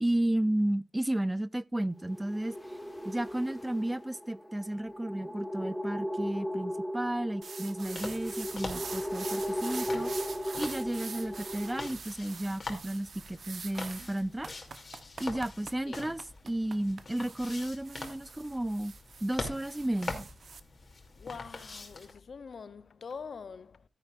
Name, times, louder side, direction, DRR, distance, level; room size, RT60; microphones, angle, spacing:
voice 1, 0.0-2.6 3.0-10.1 10.6-14.5 15.2-18.9 19.2-20.3, right 1 dB, 10° right, 0.4 m, -33 dB
sound 1, 2.0-11.9, equal, 5° left, 2.0 m, -37 dB
sound 2, 7.4-20.6, right 5 dB, 55° right, 0.9 m, -45 dB
sound 3, 7.8-22.1, left 3 dB, 40° left, 2.6 m, -44 dB
voice 2, 21.2-23.8, left 5 dB, 60° left, 0.6 m, -44 dB
13.0 x 9.9 x 2.5 m
wide cardioid pair, 105°, 0 cm